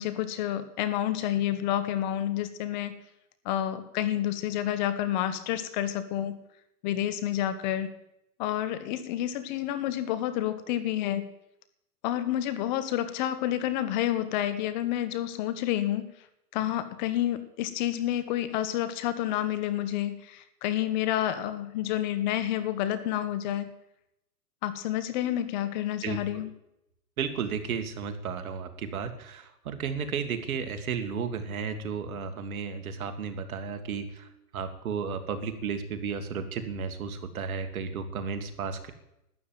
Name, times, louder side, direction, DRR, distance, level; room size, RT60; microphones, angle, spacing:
voice 1, 0.0-2.9 3.4-6.4 6.8-7.9 8.4-11.2 12.0-16.1 16.5-23.7 24.6-26.5, left 12 dB, 30° left, 13 dB, 1.1 m, -29 dB
voice 2, 26.0-26.4 27.2-38.9, right 6 dB, 60° right, 8 dB, 2.1 m, -33 dB
12.5 x 9.4 x 9.2 m, 0.83 s
hypercardioid pair, 145°, 47 cm